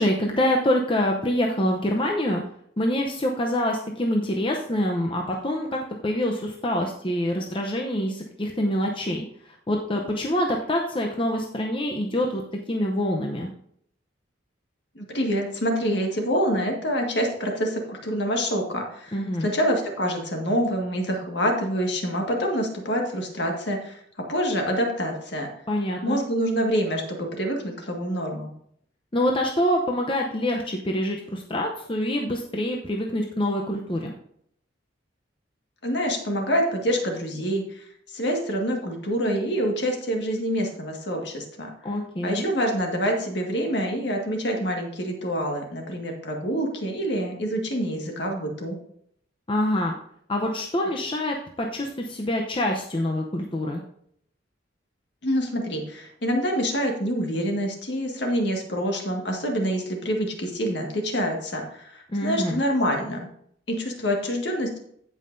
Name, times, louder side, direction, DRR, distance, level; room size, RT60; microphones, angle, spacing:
voice 1, 0.0-2.4 2.8-9.2 9.7-12.4 12.7-13.5 19.1-19.5 25.7-26.2 29.1-34.1 41.8-42.5 49.5-49.9 50.3-53.8 62.1-62.6, left 1 dB, 25° left, 1 dB, 0.7 m, -25 dB
voice 2, 15.0-19.1 19.4-25.5 26.0-28.5 35.8-37.8 38.1-41.7 42.2-48.8 55.2-63.3 63.7-64.8, equal, 60° left, 1 dB, 1.8 m, -26 dB
16.0 x 5.5 x 2.6 m, 0.68 s
head